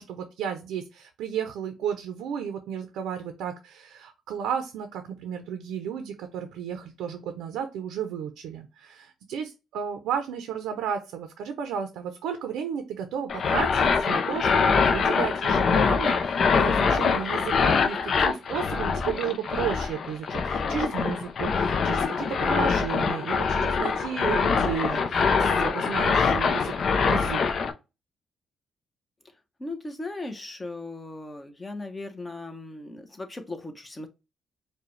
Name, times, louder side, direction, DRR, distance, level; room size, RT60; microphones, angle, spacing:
voice 1, 0.0-26.7 27.0-27.5, right 8 dB, 90° right, 0.6 m, -33 dB
sound 1, 13.3-27.7, left 5 dB, 55° left, 0.5 m, -24 dB
voice 2, 29.6-34.1, left 2 dB, 20° left, 0.9 m, -37 dB
4.8 x 2.2 x 3.1 m
cardioid pair, 90°, 0 cm